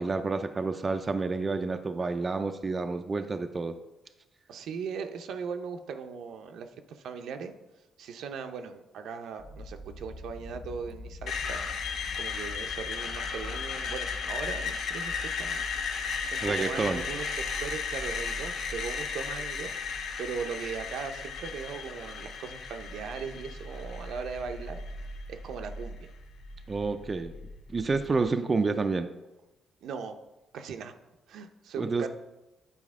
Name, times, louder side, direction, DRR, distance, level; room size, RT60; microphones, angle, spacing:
voice 1, 0.0-3.7 16.4-17.0 26.7-27.3 27.7-29.1 31.8-32.1, right 4 dB, 30° right, 7 dB, 0.4 m, -29 dB
voice 2, 4.5-7.5 8.0-11.6 12.2-15.6 16.3-19.7 20.2-24.8 25.3-26.1 29.8-30.2 30.5-30.9 31.3-32.1, right 6 dB, 75° right, 7 dB, 0.6 m, -38 dB
sound 1, 9.4-28.3, left 1 dB, 25° left, 1.4 m, -44 dB
Screech, 11.3-25.2, left 6 dB, 70° left, 0.7 m, -35 dB
9.3 x 4.2 x 3.6 m, 1.0 s
cardioid pair, 90°, 0 cm